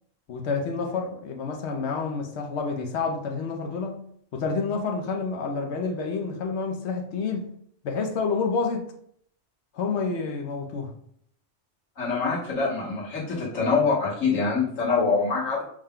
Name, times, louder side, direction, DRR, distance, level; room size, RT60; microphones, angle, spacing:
voice 1, 0.3-4.0 4.3-7.5 7.8-8.8 9.7-10.9, left 4 dB, 65° left, 3 dB, 0.9 m, -29 dB
voice 2, 12.0-15.6, left 4 dB, 90° left, -5 dB, 1.6 m, -25 dB
6.4 x 2.2 x 3.6 m, 0.65 s
omnidirectional pair, 1.3 m